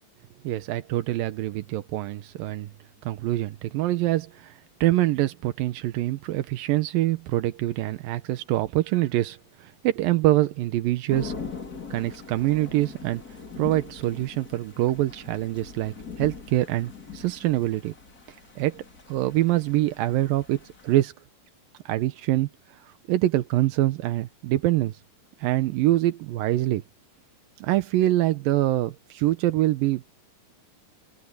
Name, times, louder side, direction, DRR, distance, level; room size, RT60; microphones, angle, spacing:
voice 1, 0.4-2.7 3.0-11.3 11.9-13.2 13.6-17.9 18.6-18.8 19.1-21.1 21.9-22.5 22.8-25.0 25.4-26.8 27.6-30.2, right 15 dB, 85° right, 2.6 m, -25 dB
Thunder / Rain, 11.1-21.0, left 5 dB, 25° left, 3.5 m, -41 dB
omnidirectional pair, 4.1 m